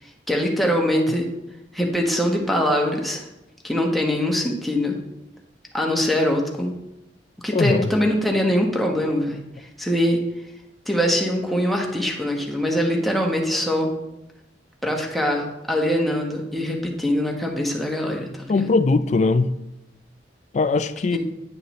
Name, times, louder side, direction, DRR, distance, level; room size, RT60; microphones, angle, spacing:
voice 1, 0.3-1.3 1.7-3.2 3.6-5.0 5.7-6.7 7.4-10.2 10.9-13.9 14.8-18.7 21.1-21.2, equal, ahead, 1.1 m, -23 dB
voice 2, 7.5-7.9 18.5-19.6 20.5-21.2, left 3 dB, 40° left, 0.4 m, -20 dB
9.6 x 6.5 x 3.2 m
head